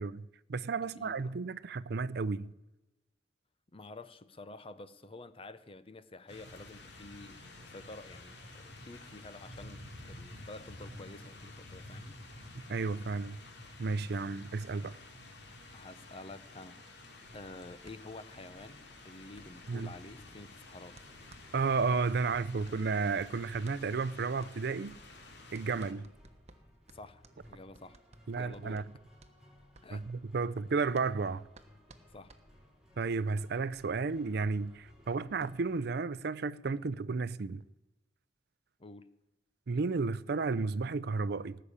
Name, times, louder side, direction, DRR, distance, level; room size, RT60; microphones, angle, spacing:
voice 1, 0.0-2.5 12.7-13.4 13.8-15.0 19.7-19.9 21.5-25.0 25.5-26.1 28.3-28.8 29.9-31.4 33.0-37.6 39.7-41.6, right 4 dB, 65° right, 0.5 m, -33 dB
voice 2, 1.0-1.3 3.7-12.2 15.7-16.8 17.3-21.0 26.9-28.0 28.3-28.9 29.8-30.1 32.1-32.3 38.8-39.1, left 2 dB, 30° left, 0.8 m, -49 dB
sound 1, 6.3-25.9, left 2 dB, 70° left, 2.6 m, -51 dB
sound 2, 17.2-35.8, equal, 5° right, 4.5 m, -61 dB
sound 3, 17.8-32.9, right 2 dB, 40° right, 1.2 m, -61 dB
18.5 x 6.9 x 9.9 m
head